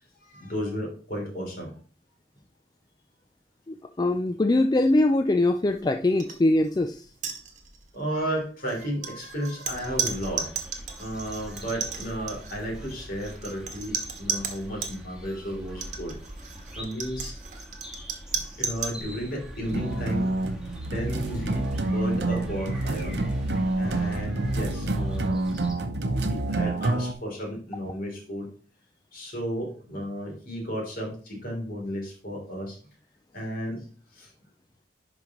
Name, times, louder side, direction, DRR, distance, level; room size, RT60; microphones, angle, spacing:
voice 1, 0.2-1.7 7.9-10.5 11.0-16.2 16.7-17.4 18.3-20.3 20.8-23.1 23.7-25.4 26.0-28.5 29.1-32.8 33.3-33.8 34.1-34.3, equal, 55° left, 0 dB, 3.3 m, -33 dB
voice 2, 3.7-7.1, left 2 dB, 25° left, 7 dB, 0.4 m, -22 dB
sound 1, 6.2-6.4 6.7-6.8 7.1-7.9 8.7-15.0 15.7-19.0, right 6 dB, 45° right, 1.2 m, -34 dB
sound 2, 9.6-25.7, equal, 5° right, 1.7 m, -43 dB
sound 3, 19.6-27.1, right 2 dB, 70° right, 0.8 m, -27 dB
10.5 x 5.0 x 3.1 m, 0.42 s
head